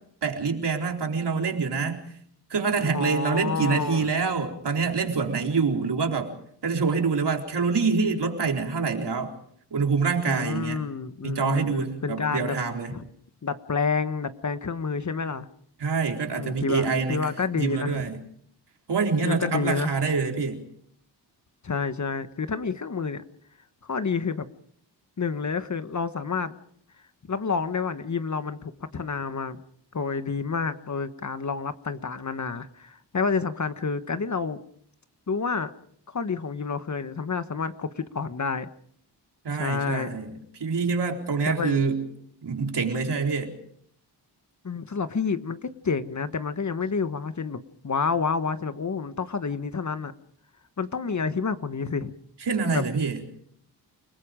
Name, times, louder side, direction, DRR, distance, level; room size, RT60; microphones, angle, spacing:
voice 1, 0.2-2.0 2.5-6.3 6.6-9.3 9.7-10.8 11.2-12.9 15.8-17.3 17.5-18.2 18.9-20.6 39.4-42.0 42.4-43.6 52.4-53.2, right 5 dB, 70° right, 3 dB, 4.1 m, -26 dB
voice 2, 2.9-4.1 10.2-12.5 12.9-13.0 13.4-15.5 16.3-18.0 19.2-19.9 21.6-23.2 23.8-24.5 25.2-26.6 27.3-29.6 29.9-34.6 35.3-35.7 36.1-38.7 39.6-40.2 41.5-41.8 44.6-47.6 47.8-50.1 50.8-52.1 52.7-52.8, left 5 dB, 40° left, 10 dB, 1.3 m, -29 dB
29.5 x 20.0 x 5.1 m, 0.65 s
wide cardioid pair, 95°, 42 cm